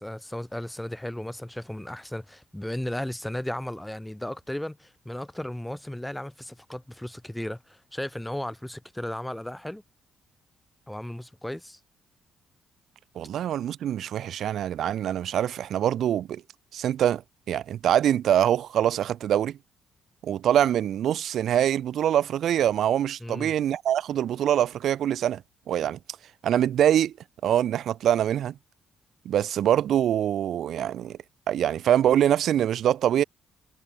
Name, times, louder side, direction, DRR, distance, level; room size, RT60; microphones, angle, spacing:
voice 1, 0.0-9.8 10.9-11.8 23.2-23.5, left 1 dB, 5° left, 0.5 m, -35 dB
voice 2, 13.2-16.4 16.7-17.2 17.5-19.6 20.2-25.4 25.7-26.0 26.4-27.1 27.4-28.5 29.3-31.2 31.5-33.2, right 10 dB, 70° right, 0.3 m, -24 dB
cardioid pair, 90°, 0 cm